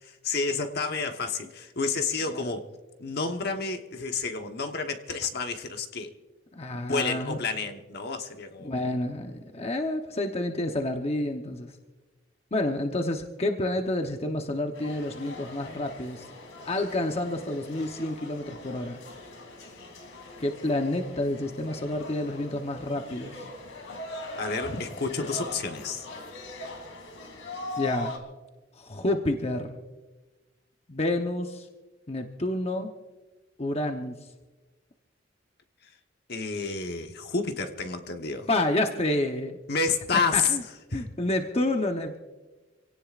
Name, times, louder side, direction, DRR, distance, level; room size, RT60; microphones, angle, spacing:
voice 1, 0.0-2.7 3.0-6.1 6.8-8.7 24.3-26.1 36.3-38.5 39.7-40.5 40.9-41.0, left 4 dB, 55° left, 5 dB, 1.2 m, -30 dB
voice 2, 6.5-7.4 8.6-11.7 12.5-16.3 16.6-19.0 20.4-23.5 24.7-24.8 27.8-28.2 28.7-29.8 30.9-31.7 32.1-32.9 33.6-34.2 38.5-39.6 40.3-40.6 40.9-42.2, left 1 dB, 35° left, 4 dB, 0.9 m, -29 dB
sound 1, 14.7-28.2, left 2 dB, 85° left, 2.7 m, -41 dB
26.5 x 17.5 x 2.5 m, 1.2 s
head